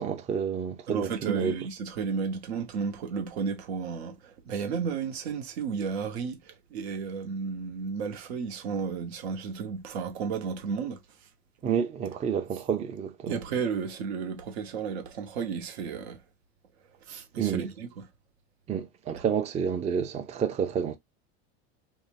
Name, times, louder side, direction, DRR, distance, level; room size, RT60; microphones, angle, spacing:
voice 1, 0.0-1.5 11.6-13.4 17.4-17.7 18.7-21.0, right 7 dB, 20° right, 0.4 m, -29 dB
voice 2, 0.9-11.0 13.3-16.2 17.1-18.0, right 6 dB, 85° right, 0.8 m, -33 dB
2.6 x 2.0 x 3.2 m
supercardioid pair, 110°, 31 cm